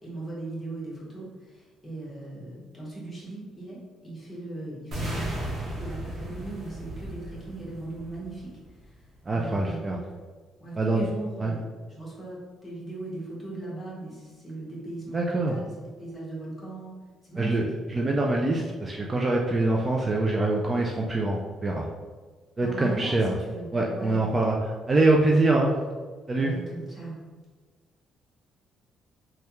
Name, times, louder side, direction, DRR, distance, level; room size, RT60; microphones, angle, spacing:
voice 1, 0.0-5.4 5.8-8.5 8.9-9.0 9.3-10.0 10.6-11.6 11.9-16.9 17.3-17.6 22.6-24.2 26.4-27.2, right 2 dB, 15° left, -6 dB, 1.3 m, -38 dB
sound 1, 4.9-8.9, right 1 dB, 50° right, 1.0 m, -35 dB
voice 2, 9.3-10.0 10.8-11.1 11.4-11.5 15.1-15.6 17.4-21.9 22.6-23.3 23.7-25.8 26.3-26.5, right 2 dB, 25° right, -1 dB, 0.3 m, -24 dB
3.3 x 2.3 x 3.0 m, 1.4 s
cardioid pair, 105°, 0 cm